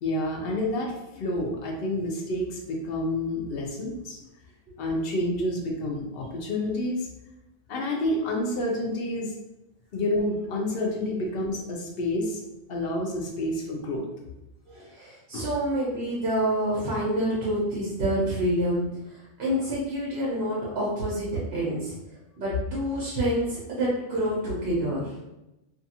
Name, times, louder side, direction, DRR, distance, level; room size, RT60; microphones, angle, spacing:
voice 1, 0.0-4.2 4.8-7.1 7.7-9.3 9.9-12.4 12.7-14.1 15.3-15.5, left 1 dB, 60° left, 0 dB, 0.7 m, -29 dB
voice 2, 14.7-18.8 19.1-22.0 22.4-25.2, right 1 dB, 60° right, -7 dB, 0.9 m, -27 dB
2.6 x 2.4 x 2.7 m, 0.94 s
omnidirectional pair, 1.3 m